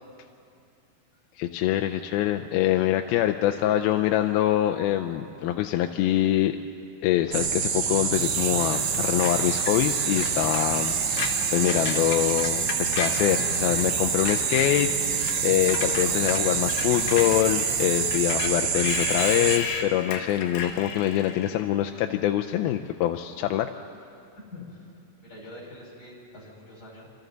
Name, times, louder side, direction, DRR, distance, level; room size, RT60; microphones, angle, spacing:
voice 1, 1.4-6.5 7.0-23.7, left 13 dB, 85° left, 5 dB, 2.5 m, -25 dB
sound 1, 7.3-19.6, right 6 dB, 65° right, 1.5 m, -27 dB
sound 2, 8.1-18.7, right 10 dB, 80° right, 3.0 m, -37 dB
Screech, 9.2-13.9 14.1-21.6, left 5 dB, 65° left, 2.9 m, -35 dB
voice 2, 24.5-24.9 25.2-27.1, left 2 dB, 25° left, -4 dB, 6.7 m, -44 dB
28.0 x 26.0 x 4.0 m, 2.6 s
omnidirectional pair, 4.3 m